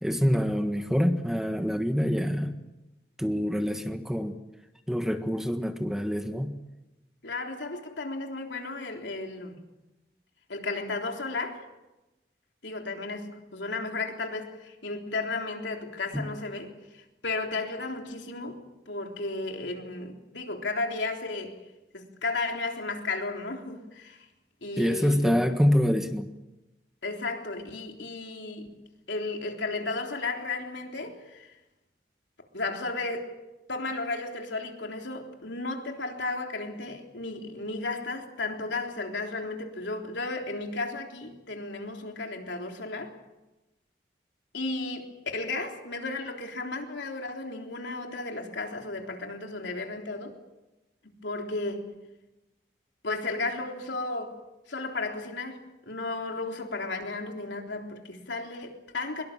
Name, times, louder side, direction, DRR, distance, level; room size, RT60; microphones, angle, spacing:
voice 1, 0.0-2.6 3.2-4.3 4.9-6.5 16.1-16.2 24.8-26.3, equal, 5° right, 1.4 m, -26 dB
voice 2, 7.2-9.6 10.5-11.7 12.6-21.6 21.9-24.3 24.6-25.4 27.0-28.8 29.1-31.5 32.5-33.3 33.7-43.1 44.5-50.4 51.0-51.9 53.0-54.4 54.7-59.2, left 3 dB, 85° left, 3.6 m, -34 dB
24.0 x 22.5 x 7.4 m
head